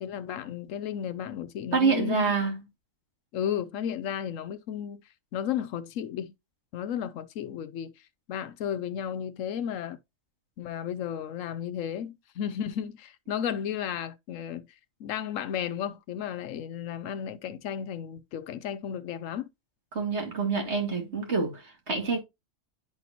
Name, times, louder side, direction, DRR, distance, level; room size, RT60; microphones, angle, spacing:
voice 1, 0.0-2.3 3.3-5.0 5.3-6.3 6.7-7.9 8.3-10.0 10.6-14.7 15.0-19.5, left 9 dB, 85° left, 1.1 m, -33 dB
voice 2, 1.7-2.6 19.9-22.2, right 4 dB, 60° right, 2.6 m, -27 dB
11.5 x 4.2 x 2.8 m
omnidirectional pair, 1.3 m